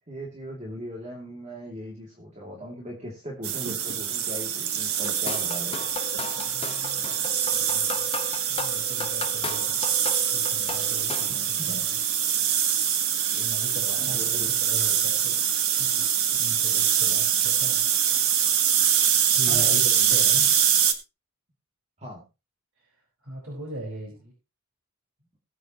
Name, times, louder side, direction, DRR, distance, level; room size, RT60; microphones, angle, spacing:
voice 1, 0.1-5.9 11.7-11.8 12.4-12.5 13.1-13.2 14.0-14.5 19.5-20.4 22.0-22.2, equal, 30° right, -2 dB, 2.6 m, -39 dB
sound 1, 3.4-20.9, right 9 dB, 85° right, 1.5 m, -24 dB
sound 2, 5.0-11.4, left 5 dB, 25° left, 0.8 m, -36 dB
voice 2, 6.3-7.0 7.5-8.1 8.5-9.8 10.3-12.0 13.3-15.5 15.8-17.9 18.6-19.0 19.3-20.5 22.8-24.3, right 1 dB, 65° right, -2 dB, 4.8 m, -40 dB
20.5 x 8.2 x 3.0 m, 0.26 s
head